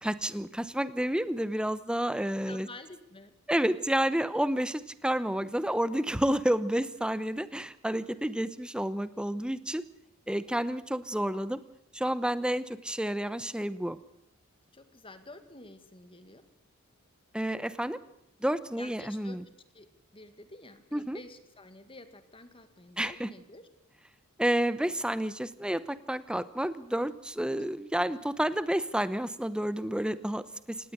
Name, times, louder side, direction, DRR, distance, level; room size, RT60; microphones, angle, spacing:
voice 1, 0.0-2.7 3.5-9.8 10.3-11.6 11.9-14.0 17.3-18.0 18.4-19.4 20.9-21.2 23.0-23.3 24.4-30.8, right 1 dB, 5° right, 15 dB, 0.9 m, -30 dB
voice 2, 2.5-3.3 8.2-8.3 10.7-10.8 14.7-16.4 18.8-19.4 19.7-19.9 20.1-23.7 27.4-27.7, left 2 dB, 25° left, 10 dB, 2.1 m, -50 dB
19.0 x 18.0 x 8.1 m, 0.79 s
head